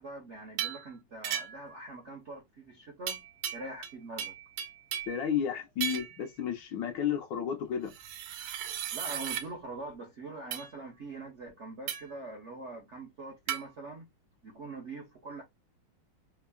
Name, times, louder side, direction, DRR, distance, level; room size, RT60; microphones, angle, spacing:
voice 1, 0.0-3.2 3.5-4.4 8.9-14.1 14.4-15.4, right 2 dB, 55° right, 0.7 m, -43 dB
sound 1, 0.6-0.9 1.2-1.7 3.1-3.9 4.2-5.2 5.8-6.2 7.9-9.5 10.5-10.7 11.9-12.2 13.5-13.6, right 10 dB, 80° right, 1.4 m, -36 dB
voice 2, 5.1-7.9, left 8 dB, 70° left, 1.2 m, -32 dB
3.6 x 2.0 x 2.2 m
omnidirectional pair, 2.3 m